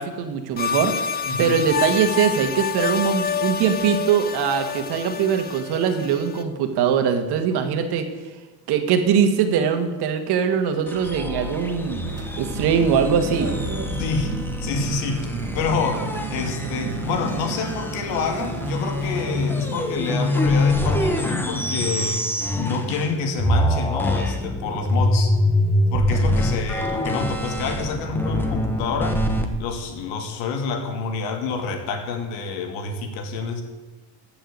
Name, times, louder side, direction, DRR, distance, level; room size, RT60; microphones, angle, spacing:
voice 1, 0.0-8.1 8.7-12.0 12.4-13.5, right 7 dB, 60° right, 7 dB, 1.9 m, -22 dB
sound 1, 0.6-6.4, left 7 dB, 20° left, 0.6 m, -28 dB
sound 2, 10.9-23.1 23.4-29.4, left 1 dB, 5° left, 1.1 m, -25 dB
sound 3, 12.1-21.2, right 5 dB, 30° right, 2.0 m, -33 dB
voice 2, 14.0-14.3 14.6-15.3 15.5-22.3 22.5-25.3 25.9-29.2 29.6-33.6, left 4 dB, 85° left, 4 dB, 2.7 m, -27 dB
14.5 x 6.3 x 8.7 m, 1.2 s
cardioid pair, 145°, 45 cm